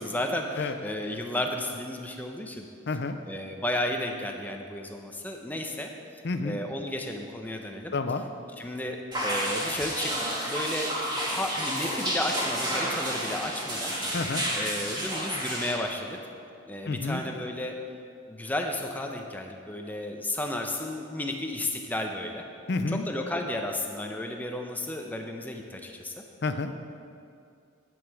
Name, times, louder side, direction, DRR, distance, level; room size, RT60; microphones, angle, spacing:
voice 1, 0.0-2.7 3.3-5.9 6.4-7.9 8.6-13.9 14.5-16.2 16.7-17.8 18.3-22.4 22.9-26.1, left 1 dB, 10° left, 2 dB, 0.7 m, -33 dB
voice 2, 2.9-3.2 6.2-6.6 7.9-8.2 14.1-14.4 16.9-17.2 22.7-23.0 26.4-26.7, left 3 dB, 55° left, 8 dB, 0.5 m, -29 dB
sound 1, 9.1-15.7, equal, 20° right, 1.9 m, -30 dB
9.1 x 9.0 x 4.7 m, 2.5 s
head